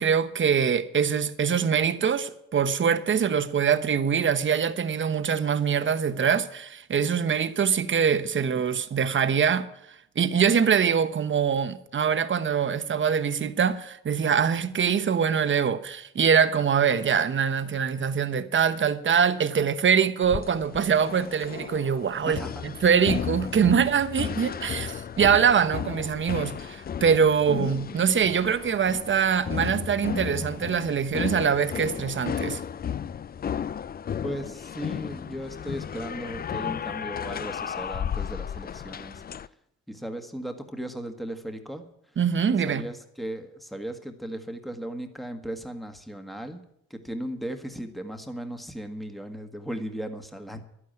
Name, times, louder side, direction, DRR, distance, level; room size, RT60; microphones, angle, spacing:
voice 1, 0.0-9.7 10.2-32.6 42.2-42.8, right 7 dB, 40° right, 1.1 m, -23 dB
sound 1, 20.2-39.5, left 8 dB, 30° left, 0.4 m, -34 dB
voice 2, 22.2-22.6 34.2-39.6 39.9-42.2 42.7-46.6 46.9-50.6, right 1 dB, ahead, 1.6 m, -37 dB
11.5 x 9.6 x 9.2 m
cardioid pair, 90°, 30 cm